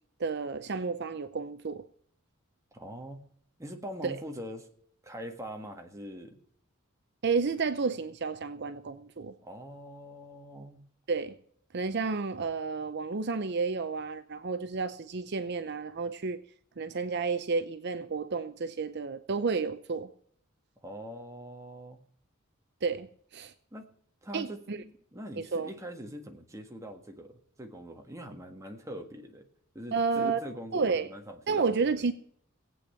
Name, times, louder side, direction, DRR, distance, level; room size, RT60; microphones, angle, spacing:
voice 1, 0.2-1.8 4.0-4.2 7.2-9.3 11.1-11.4 11.7-16.4 16.8-20.1 22.8-23.1 23.3-23.5 24.3-24.8 25.4-25.7 29.9-30.4 30.7-31.1 31.5-32.1, right 4 dB, 55° right, 0.6 m, -31 dB
voice 2, 2.7-3.2 3.6-4.7 5.0-6.4 9.4-10.8 20.8-22.0 23.7-23.9 24.2-29.5 29.7-31.8, equal, 15° right, 1.6 m, -43 dB
16.5 x 8.7 x 5.7 m
head